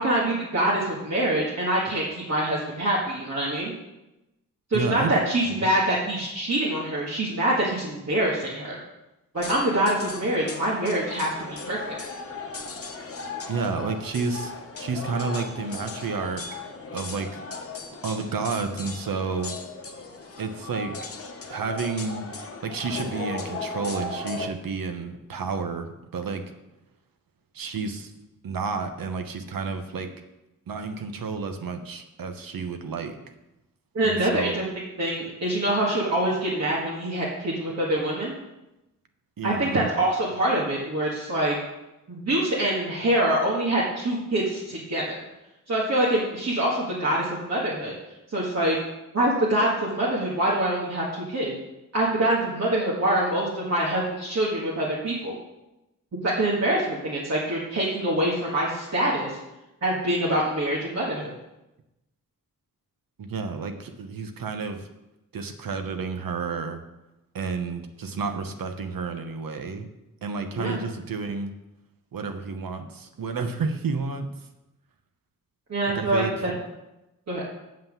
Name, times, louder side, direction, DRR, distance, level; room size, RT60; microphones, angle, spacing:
voice 1, 0.0-3.7 4.7-8.8 9.3-12.0 33.9-34.6 35.0-38.3 39.4-41.5 42.1-45.2 45.7-47.9 48.3-48.8 49.1-51.5 51.9-55.3 56.2-59.4 59.8-61.3 70.5-70.8 75.7-76.5 77.3-77.4, right 1 dB, 50° right, -5 dB, 1.8 m, -25 dB
voice 2, 4.7-5.1 5.4-5.7 13.5-16.4 16.9-17.4 18.0-19.5 20.4-20.9 21.5-22.3 22.6-26.4 27.5-28.1 28.4-30.1 30.7-33.1 34.0-34.6 39.4-39.9 63.2-64.9 65.3-66.8 67.3-69.9 70.2-71.5 72.1-74.3 75.9-76.3, right 4 dB, 85° right, 7 dB, 1.0 m, -30 dB
sound 1, 9.3-24.5, left 3 dB, 45° left, 1.0 m, -37 dB
7.6 x 5.7 x 7.3 m, 0.95 s
wide cardioid pair, 145°, 33 cm